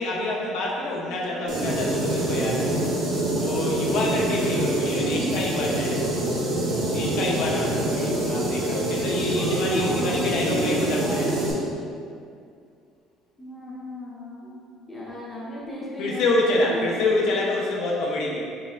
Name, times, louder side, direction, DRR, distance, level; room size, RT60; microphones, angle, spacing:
voice 1, 0.0-3.0 3.3-6.2 6.9-11.3 16.0-18.4, left 2 dB, 55° left, -3 dB, 0.5 m, -27 dB
voice 2, 1.1-1.4 5.2-5.4 7.9-8.6 9.3-11.8 13.4-17.5, equal, 5° left, -8 dB, 0.8 m, -35 dB
sound 1, 1.5-11.5, right 1 dB, 65° right, 1.1 m, -25 dB
4.2 x 4.1 x 2.4 m, 2.3 s
cardioid pair, 180°, 0 cm